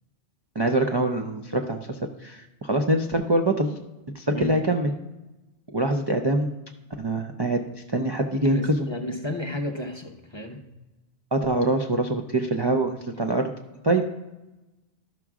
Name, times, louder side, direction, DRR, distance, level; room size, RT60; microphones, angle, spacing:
voice 1, 0.6-3.7 4.1-4.9 5.7-6.5 7.0-8.9 11.3-13.5 13.8-14.1, right 2 dB, 35° right, 3 dB, 0.4 m, -24 dB
voice 2, 8.4-10.6, left 1 dB, 30° left, 3 dB, 0.6 m, -32 dB
12.5 x 6.0 x 3.6 m, 1.0 s
omnidirectional pair, 1.2 m